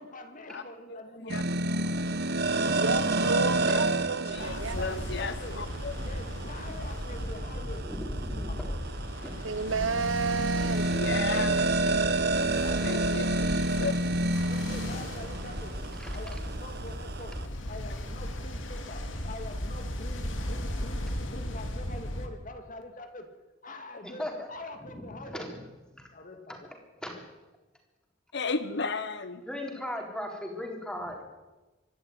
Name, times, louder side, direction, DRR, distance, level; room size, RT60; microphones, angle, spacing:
voice 1, 0.0-1.4 1.7-1.8 4.4-5.7 6.0-8.8 9.8-10.0 12.6-13.7 14.5-23.3 23.6-25.5 26.1-26.7, left 2 dB, 45° left, 2.5 m, -45 dB
voice 2, 0.9-1.4 3.2-3.9 4.3-5.9 10.9-11.6 12.8-13.9 28.3-29.4, left 4 dB, 60° left, 1.0 m, -34 dB
sound 1, 1.3-17.5, right 2 dB, 55° right, 1.2 m, -30 dB
voice 3, 2.8-5.0 9.4-10.9, right 4 dB, 85° right, 1.1 m, -31 dB
Ocean, 4.4-22.3, equal, 75° left, 2.5 m, -36 dB
voice 4, 7.8-8.7 9.2-9.4 16.0-16.1 24.0-24.5 25.1-25.6 26.5-26.6 27.0-27.2 29.5-31.2, left 1 dB, 5° left, 4.0 m, -38 dB
25.0 x 12.0 x 9.4 m
head